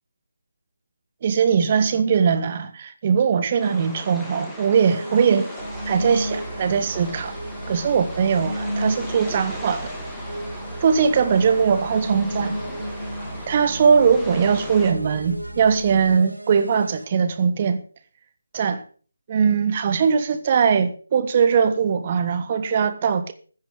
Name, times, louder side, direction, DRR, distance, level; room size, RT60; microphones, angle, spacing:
voice 1, 1.2-5.5 5.9-7.4 7.7-9.9 10.8-12.6 13.5-17.8 18.5-18.8 19.3-23.3, right 6 dB, 30° right, 1.2 m, -20 dB
sound 1, 3.6-14.9, equal, 5° left, 2.4 m, -38 dB
sound 2, 4.7-17.0, equal, 85° right, 2.4 m, -34 dB
sound 3, 5.6-16.1, right 1 dB, 80° left, 5.3 m, -39 dB
15.0 x 8.8 x 5.2 m
figure-of-eight pair, 155°, 0 cm